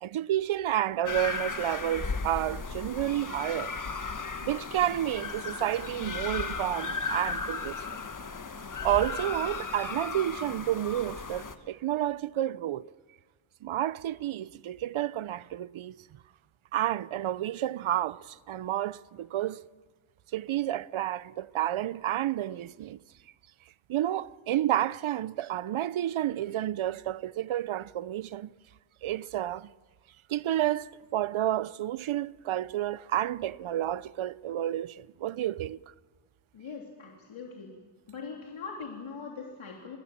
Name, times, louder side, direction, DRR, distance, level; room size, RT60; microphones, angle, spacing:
voice 1, 0.0-3.7 4.4-8.0 8.8-12.9 13.6-16.0 16.7-19.6 20.3-23.0 23.9-28.5 29.0-29.7 30.3-35.8, right 12 dB, 80° right, 0.7 m, -30 dB
sound 1, 1.1-11.6, left 4 dB, 40° left, 1.7 m, -35 dB
voice 2, 36.5-37.7 38.1-40.0, left 5 dB, 75° left, 3.6 m, -41 dB
29.0 x 21.0 x 7.4 m
wide cardioid pair, 90°, 48 cm